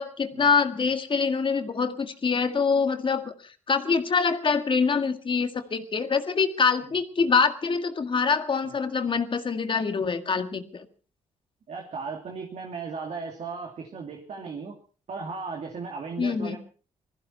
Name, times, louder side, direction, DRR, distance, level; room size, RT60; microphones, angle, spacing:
voice 1, 0.0-10.9 16.2-16.6, left 5 dB, 40° left, 8 dB, 1.9 m, -25 dB
voice 2, 11.7-14.8 15.1-16.6, right 4 dB, 60° right, 2 dB, 2.7 m, -36 dB
20.5 x 15.0 x 4.4 m, 0.38 s
cardioid pair, 85°, 13 cm